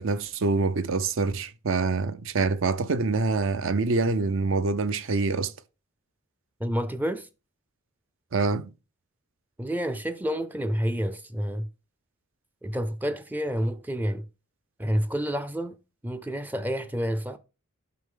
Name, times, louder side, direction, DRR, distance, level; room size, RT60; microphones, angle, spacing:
voice 1, 0.0-5.5 8.3-8.7, right 3 dB, 65° right, 0.6 m, -25 dB
voice 2, 6.6-7.3 9.6-11.7 12.6-14.2 14.8-15.8 16.0-17.4, equal, 10° right, 0.4 m, -29 dB
9.4 x 5.8 x 3.7 m
head